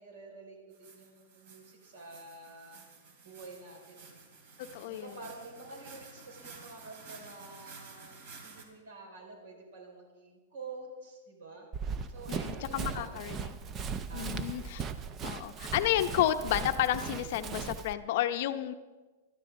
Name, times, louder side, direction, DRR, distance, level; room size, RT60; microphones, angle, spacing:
voice 1, 0.0-2.8 3.2-4.2 4.8-8.1 8.4-11.7 12.1-13.2 14.1-14.7, right 3 dB, 70° right, 1 dB, 4.8 m, -48 dB
sound 1, 0.7-8.6, right 4 dB, 50° right, 2.8 m, -52 dB
voice 2, 4.6-5.2 12.3-13.6 14.1-14.9 15.2-18.7, left 12 dB, 45° left, 9 dB, 0.7 m, -31 dB
Run, 11.7-17.9, right 6 dB, 20° right, 0.5 m, -38 dB
20.5 x 12.5 x 3.8 m, 1.3 s
supercardioid pair, 165°, 0 cm